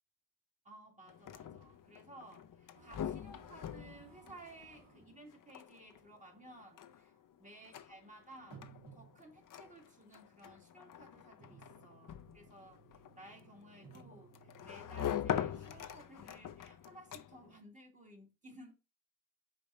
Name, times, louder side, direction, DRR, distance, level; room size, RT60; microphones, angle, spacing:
voice 1, 0.6-7.1 7.4-18.7, right 1 dB, 20° right, 2.0 m, -57 dB
sound 1, 1.0-17.6, left 10 dB, 50° left, 0.7 m, -44 dB
sound 2, 2.7-5.2 6.0-6.1 6.5-6.6 7.5-7.6 8.4-9.5 11.0-16.0, right 6 dB, 75° right, 2.1 m, -60 dB
5.1 x 4.3 x 5.4 m
cardioid pair, 120°, 41 cm